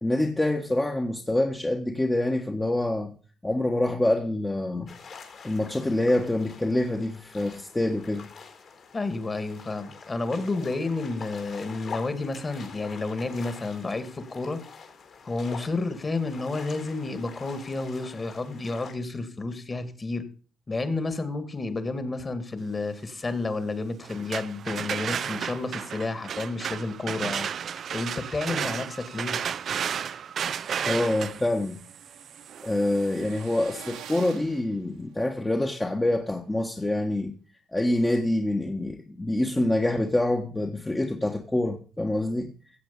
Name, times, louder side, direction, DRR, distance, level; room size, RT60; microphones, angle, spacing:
voice 1, 0.0-3.1 3.4-4.9 5.4-8.3 30.8-31.8 32.6-37.3 37.7-42.5, left 1 dB, 15° left, 1.3 m, -26 dB
sound 1, 4.9-18.9, left 5 dB, 55° left, 4.2 m, -45 dB
voice 2, 8.9-14.6 15.2-20.3 20.7-27.5 27.9-29.4, left 3 dB, 30° left, 2.2 m, -31 dB
sound 2, 24.0-33.9, right 8 dB, 60° right, 0.5 m, -33 dB
sound 3, 30.8-35.6, right 8 dB, 90° right, 1.9 m, -47 dB
16.0 x 7.7 x 5.5 m
cardioid pair, 90°, 0 cm